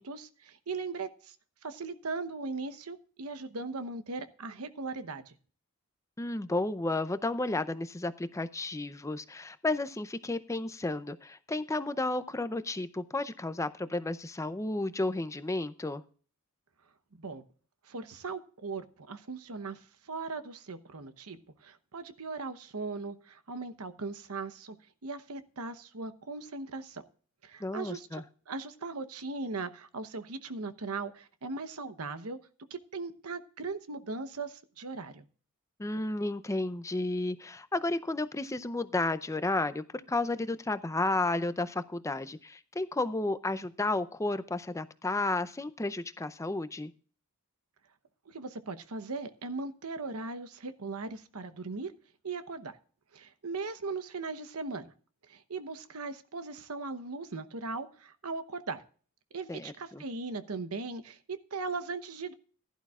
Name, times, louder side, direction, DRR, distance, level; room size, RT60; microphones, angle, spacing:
voice 1, 0.0-1.4 1.6-5.3 17.2-17.4 17.8-24.8 25.0-27.0 27.4-32.4 32.7-35.3 48.3-51.9 52.2-52.8 53.1-54.9 55.2-58.8 59.3-62.3, right 3 dB, 85° right, 11 dB, 1.0 m, -39 dB
voice 2, 6.2-16.0 27.6-28.2 35.8-46.9 59.5-60.0, left 2 dB, 15° left, 13 dB, 0.5 m, -32 dB
15.5 x 11.5 x 2.4 m, 0.42 s
head